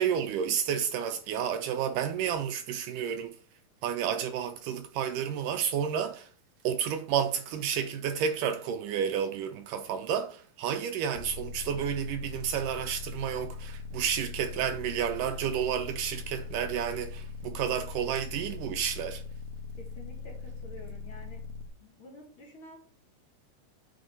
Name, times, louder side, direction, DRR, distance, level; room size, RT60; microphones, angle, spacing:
voice 1, 0.0-3.4 3.8-6.3 6.6-19.2, right 8 dB, 80° right, 2.0 m, -31 dB
sound 1, 11.1-21.7, left 4 dB, 85° left, 2.6 m, -41 dB
voice 2, 19.8-21.4 21.8-22.8, left 1 dB, 45° left, 2.0 m, -49 dB
7.7 x 4.3 x 6.6 m
omnidirectional pair, 4.1 m